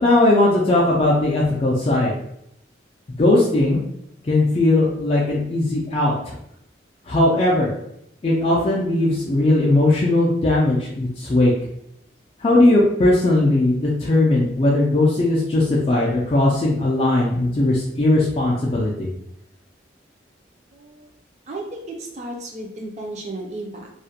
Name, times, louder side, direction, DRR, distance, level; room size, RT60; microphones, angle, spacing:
voice 1, 0.0-2.2 3.2-3.8 4.2-6.4 7.1-7.7 8.2-11.5 12.4-19.1, left 2 dB, 30° left, -5 dB, 0.3 m, -18 dB
voice 2, 20.7-21.1 21.5-23.9, right 2 dB, 40° right, -1 dB, 0.4 m, -34 dB
2.4 x 2.1 x 2.7 m, 0.77 s
head